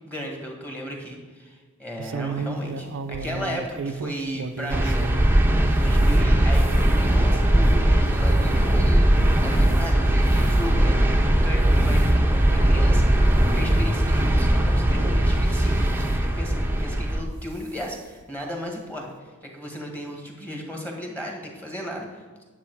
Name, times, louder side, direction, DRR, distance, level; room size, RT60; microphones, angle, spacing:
voice 1, 0.0-5.1 5.7-9.1 9.4-22.4, equal, 10° left, 0 dB, 1.8 m, -35 dB
sound 1, 2.0-5.3 5.8-9.9 10.3-10.6 11.2-11.5 11.8-12.1 12.7-12.8 13.2-13.3 14.4-14.5 15.3-16.1 17.2-17.4 17.8-17.9 18.2-18.3, right 4 dB, 60° right, 0.5 m, -35 dB
sound 2, 4.7-17.2, right 1 dB, 10° right, 0.8 m, -19 dB
10.0 x 7.3 x 4.8 m, 1.4 s
head